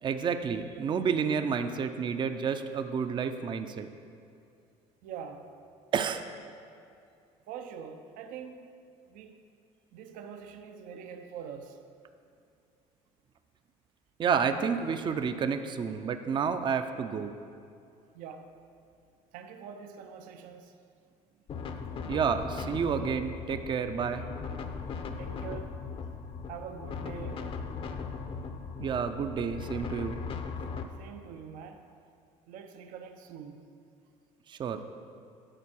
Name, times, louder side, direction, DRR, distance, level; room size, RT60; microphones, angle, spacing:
voice 1, 0.0-3.9 5.9-6.2 14.2-17.3 22.1-24.2 28.8-30.2 34.5-34.8, right 6 dB, 35° right, 8 dB, 0.5 m, -30 dB
voice 2, 5.0-5.5 7.5-8.7 9.1-9.4 9.9-11.8 18.1-18.5 19.3-20.8 25.2-25.8 26.5-27.5 31.0-31.9 32.5-33.6, right 7 dB, 70° right, 6 dB, 0.7 m, -44 dB
sound 1, 21.5-30.8, left 5 dB, 40° left, 0.6 m, -38 dB
10.0 x 4.5 x 6.3 m, 2.5 s
cardioid pair, 115°, 14 cm